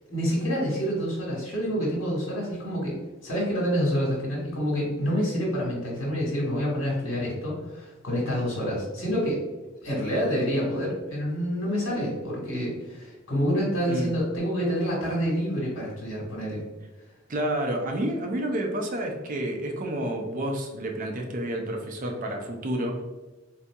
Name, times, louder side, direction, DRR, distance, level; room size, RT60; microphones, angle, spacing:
voice 1, 0.1-3.0 3.2-9.4 9.8-16.6, equal, 80° left, -4 dB, 1.5 m, -27 dB
voice 2, 17.3-23.0, right 1 dB, 40° right, 2 dB, 0.5 m, -29 dB
4.0 x 2.7 x 2.3 m, 1.2 s
head